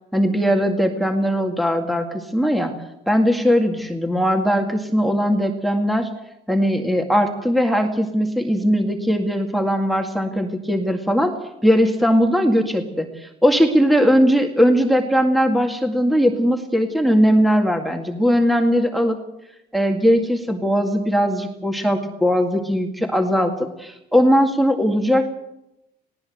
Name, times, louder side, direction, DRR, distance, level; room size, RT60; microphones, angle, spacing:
voice 1, 0.1-2.7 3.1-6.1 6.5-11.3 11.6-19.2 19.7-25.3, equal, ahead, 4 dB, 2.1 m, -19 dB
20.0 x 18.0 x 7.8 m, 0.88 s
cardioid pair, 110°, 17 cm